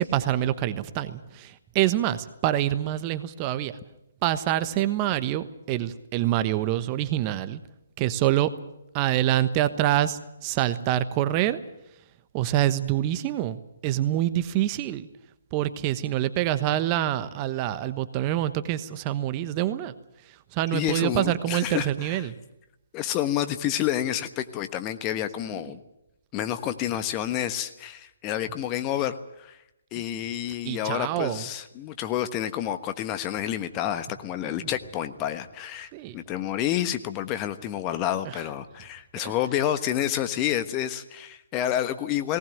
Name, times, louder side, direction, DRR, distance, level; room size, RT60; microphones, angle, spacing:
voice 1, 0.0-3.8 4.2-7.6 8.0-8.5 8.9-11.6 12.3-15.1 15.5-19.9 20.5-22.3 30.6-31.4 34.4-34.7 35.9-36.2 38.2-38.4 39.2-39.3, right 13 dB, 30° right, 13 dB, 1.1 m, -26 dB
voice 2, 20.7-22.2 22.9-25.8 26.3-29.6 29.9-42.4, left 11 dB, 25° left, 10 dB, 1.2 m, -29 dB
19.0 x 18.5 x 9.1 m, 0.86 s
figure-of-eight pair, 135°, 0 cm